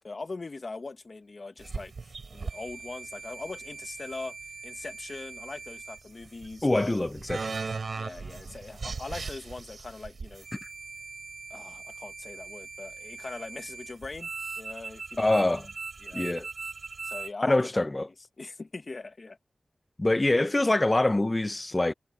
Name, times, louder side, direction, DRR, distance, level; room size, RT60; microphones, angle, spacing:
voice 1, 0.0-1.9 2.3-4.4 4.6-6.9 7.9-10.5 11.5-14.3 14.6-15.5 16.0-16.2 17.0-19.4, left 3 dB, 55° left, 1.4 m, -41 dB
sound 1, 1.6-17.3, right 4 dB, 75° right, 5.3 m, -40 dB
voice 2, 6.6-7.5 15.2-15.6 16.1-16.5 17.4-18.1 20.0-21.9, left 2 dB, 30° left, 0.7 m, -25 dB
wide cardioid pair, 65°, 0 cm